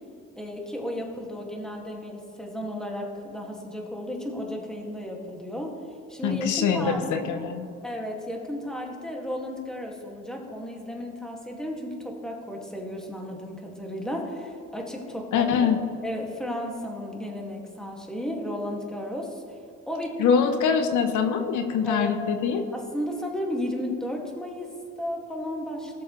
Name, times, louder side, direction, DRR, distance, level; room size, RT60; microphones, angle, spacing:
voice 1, 0.4-5.8 6.1-7.5 7.8-15.7 16.0-19.6 19.9-20.3 21.9-22.1 22.7-26.0, equal, ahead, 0 dB, 2.0 m, -34 dB
voice 2, 6.2-7.7 15.3-15.8 20.2-22.6, left 6 dB, 80° left, 8 dB, 0.8 m, -24 dB
17.5 x 7.1 x 3.1 m, 2.5 s
cardioid pair, 90°, 30 cm